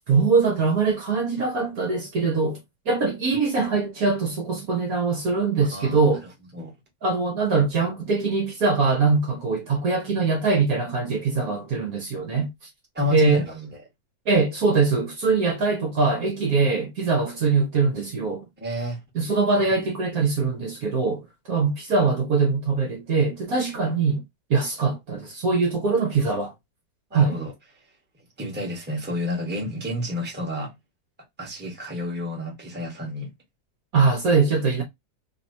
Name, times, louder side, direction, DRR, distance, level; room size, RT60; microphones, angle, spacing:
voice 1, 0.1-2.6 2.9-6.2 7.0-12.5 13.1-13.4 14.3-18.4 19.1-24.2 24.5-26.5 27.1-27.4 33.9-34.8, right 4 dB, 55° right, 1.3 m, -22 dB
voice 2, 5.6-6.0 6.5-6.7 12.9-13.7 18.6-19.0 27.1-27.5 28.4-30.7 31.4-33.3, left 1 dB, 5° right, 1.2 m, -30 dB
3.6 x 2.9 x 2.6 m
omnidirectional pair, 2.0 m